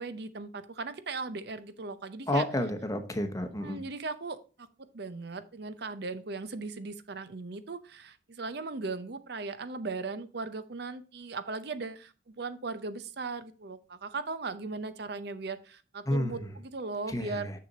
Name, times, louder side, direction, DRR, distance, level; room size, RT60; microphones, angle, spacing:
voice 1, 0.0-2.4 3.6-4.7 4.9-17.5, right 3 dB, 60° right, 12 dB, 0.7 m, -38 dB
voice 2, 2.3-3.8 16.1-16.5 17.1-17.5, left 1 dB, 20° left, 7 dB, 0.9 m, -30 dB
6.7 x 6.7 x 4.0 m, 0.34 s
head